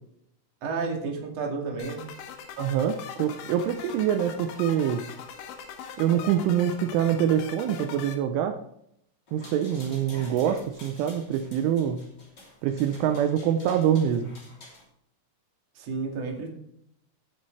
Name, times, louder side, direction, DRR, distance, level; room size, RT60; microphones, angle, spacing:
voice 1, 0.6-2.0 15.7-16.5, right 4 dB, 40° right, 0 dB, 2.8 m, -31 dB
sound 1, 1.8-8.2, left 7 dB, 80° left, 4.0 m, -41 dB
voice 2, 2.6-5.0 6.0-8.6 9.3-12.0 12.6-14.3, right 9 dB, 80° right, 7 dB, 3.2 m, -25 dB
sound 2, 9.3-14.8, left 2 dB, 25° left, 2.7 m, -48 dB
17.5 x 7.8 x 3.3 m, 0.73 s
omnidirectional pair, 5.7 m